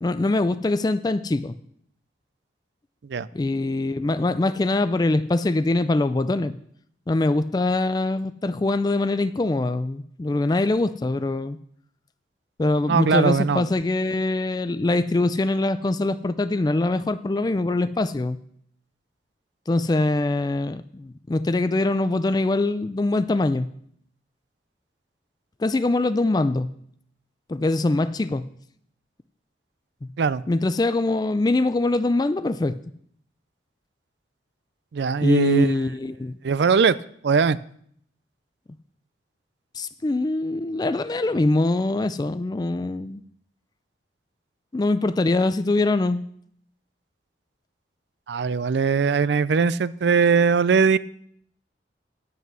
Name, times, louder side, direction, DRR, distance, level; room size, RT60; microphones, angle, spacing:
voice 1, 0.0-1.5 3.3-6.5 7.1-11.6 12.6-18.4 19.7-23.7 25.6-26.7 27.5-28.4 30.5-32.7 35.2-36.4 39.8-43.2 44.7-46.2, left 2 dB, 20° left, 12 dB, 0.3 m, -23 dB
voice 2, 12.9-13.6 30.2-30.4 34.9-35.7 36.4-37.0 37.2-37.6 48.3-51.0, right 5 dB, 70° right, 17 dB, 0.4 m, -20 dB
9.4 x 8.0 x 6.2 m, 0.66 s
head